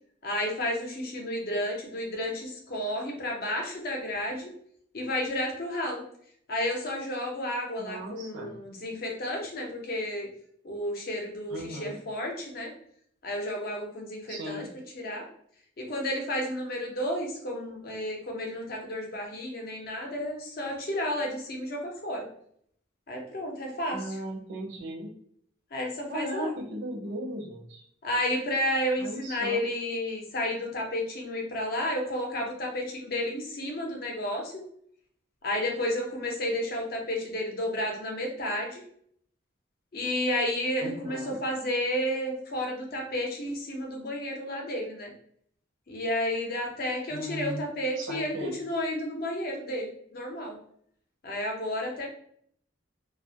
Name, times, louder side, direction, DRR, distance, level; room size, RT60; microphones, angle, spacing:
voice 1, 0.2-4.5 4.9-6.0 6.5-10.3 10.6-12.7 13.2-14.7 14.9-15.3 15.8-22.3 23.1-24.2 25.7-26.5 28.0-34.6 35.4-38.8 39.9-45.1 45.9-50.6 51.2-52.1, left 1 dB, 50° left, 1 dB, 0.5 m, -31 dB
voice 2, 7.8-8.5 11.5-12.0 14.3-14.7 23.9-25.1 26.1-27.8 29.0-29.6 40.8-41.4 47.1-47.7 48.0-48.6, right 1 dB, 65° right, -1 dB, 0.5 m, -37 dB
2.2 x 2.0 x 2.7 m, 0.65 s
head